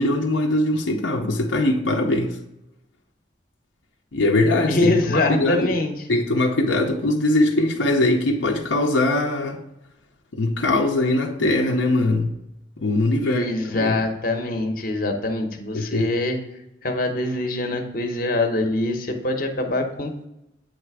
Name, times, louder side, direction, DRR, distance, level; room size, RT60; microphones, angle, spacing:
voice 1, 0.0-2.4 4.1-5.8 6.1-9.6 10.3-12.3 12.8-13.5 13.7-14.0 15.7-16.1, left 2 dB, 80° left, 0.6 m, -21 dB
voice 2, 4.7-5.9 13.2-16.4 16.8-20.3, left 2 dB, 50° left, 0.8 m, -24 dB
8.4 x 3.3 x 4.7 m
head